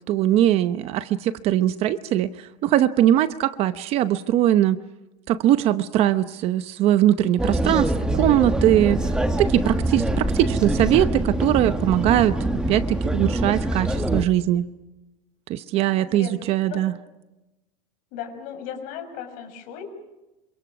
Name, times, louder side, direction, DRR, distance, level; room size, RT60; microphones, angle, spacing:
voice 1, 0.1-2.3 2.6-4.8 5.3-9.0 9.4-12.4 12.7-14.7 15.5-16.9, right 12 dB, 35° right, 13 dB, 0.8 m, -21 dB
sound 1, 7.4-14.2, right 1 dB, 5° right, 1.2 m, -24 dB
voice 2, 15.7-16.9 18.1-19.8, left 8 dB, 45° left, 6 dB, 6.5 m, -37 dB
27.5 x 26.0 x 6.1 m, 1.0 s
supercardioid pair, 170°, 18 cm